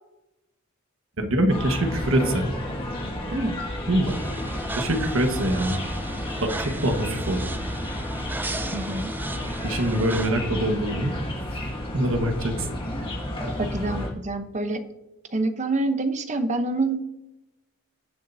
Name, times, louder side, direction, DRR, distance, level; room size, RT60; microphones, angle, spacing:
voice 1, 1.2-2.5 3.9-4.2 4.7-5.8 6.4-7.4 9.6-11.1 11.9-12.7, right 1 dB, 65° right, 5 dB, 1.5 m, -24 dB
sound 1, 1.5-14.1, left 1 dB, 25° left, 1.8 m, -32 dB
voice 2, 3.3-3.6 8.7-9.1 13.6-14.8 15.3-17.0, right 2 dB, 30° right, 8 dB, 0.9 m, -26 dB
sound 2, 4.1-10.3, right 2 dB, 10° right, 0.4 m, -35 dB
18.5 x 7.4 x 2.7 m, 0.94 s
head